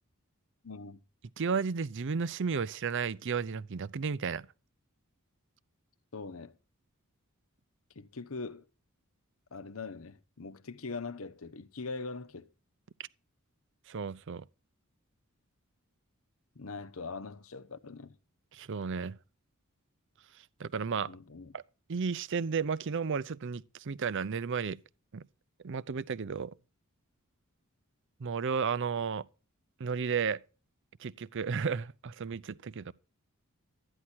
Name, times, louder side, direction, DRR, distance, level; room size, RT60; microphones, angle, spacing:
voice 1, 0.6-1.0 6.1-6.5 7.9-8.6 9.5-12.5 16.5-18.2 21.0-21.6, left 4 dB, 70° left, 0.9 m, -42 dB
voice 2, 1.4-4.5 13.9-14.4 18.5-19.1 20.6-21.1 21.5-21.6 21.9-24.8 25.1-25.2 25.6-26.5 28.2-29.2 29.8-30.4 31.0-32.9, right 5 dB, 55° right, 0.5 m, -33 dB
13.0 x 9.8 x 4.4 m
head